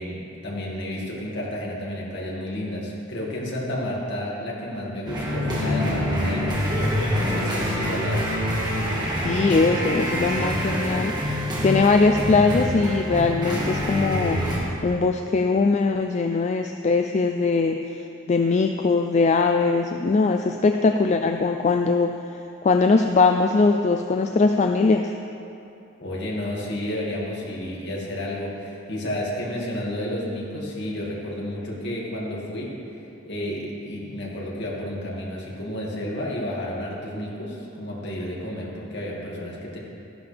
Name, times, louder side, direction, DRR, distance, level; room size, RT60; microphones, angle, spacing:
voice 1, 0.0-6.6 7.1-8.2 26.0-32.8 33.3-39.8, left 1 dB, 55° left, -4 dB, 2.3 m, -31 dB
sound 1, 5.1-14.6, equal, 20° right, 1.8 m, -25 dB
voice 2, 9.2-14.4 14.8-25.1, left 4 dB, 35° left, 5 dB, 0.3 m, -21 dB
13.0 x 11.5 x 3.5 m, 2.8 s
head